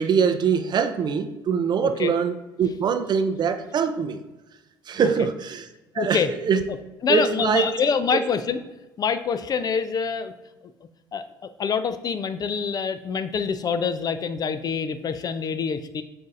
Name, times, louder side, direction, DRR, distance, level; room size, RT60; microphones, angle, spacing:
voice 1, 0.0-4.2 4.9-5.7 5.9-6.6 7.1-7.7 8.1-8.2, right 6 dB, 40° right, 9 dB, 0.4 m, -23 dB
voice 2, 6.0-6.3 7.0-8.6 9.0-10.3 11.1-11.2 11.6-16.0, left 6 dB, 35° left, 11 dB, 0.4 m, -25 dB
7.6 x 2.6 x 2.5 m, 1.0 s
hypercardioid pair, 60°, 11 cm